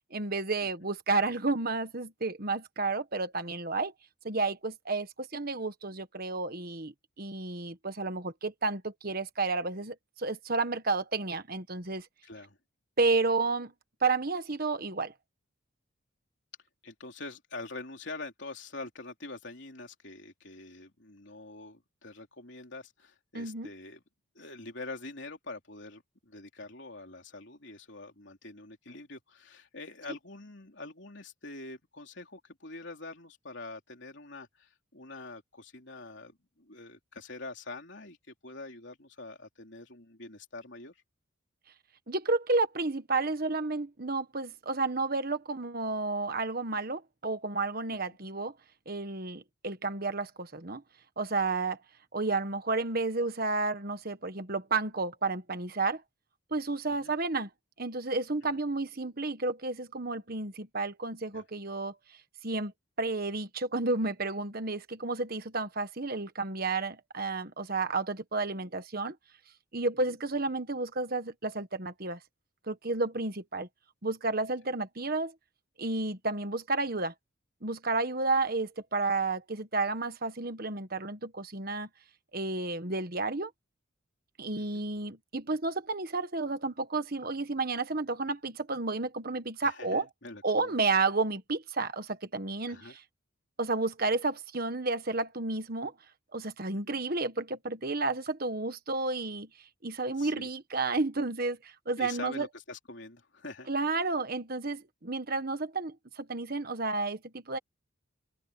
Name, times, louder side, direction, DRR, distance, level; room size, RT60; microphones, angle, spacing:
voice 1, 0.1-3.9 4.2-12.1 13.0-13.7 14.0-15.1 23.3-23.7 42.1-48.5 48.9-50.8 51.2-51.8 52.1-56.0 56.5-57.5 57.8-61.9 62.4-62.7 63.0-69.1 69.7-72.2 72.7-73.7 74.0-75.3 75.8-77.1 77.6-81.9 82.3-83.5 84.4-90.1 90.4-93.0 93.6-95.9 96.3-99.5 99.8-102.5 103.7-107.6, right 3 dB, 45° right, 1.4 m, -31 dB
voice 2, 12.2-12.6 16.8-24.0 24.3-41.0 56.9-57.1 58.5-58.6 61.3-61.4 70.1-70.2 84.6-84.9 89.6-90.8 92.7-93.0 96.7-97.0 100.2-100.5 102.0-103.7, left 2 dB, 55° left, 3.8 m, -45 dB
open air
head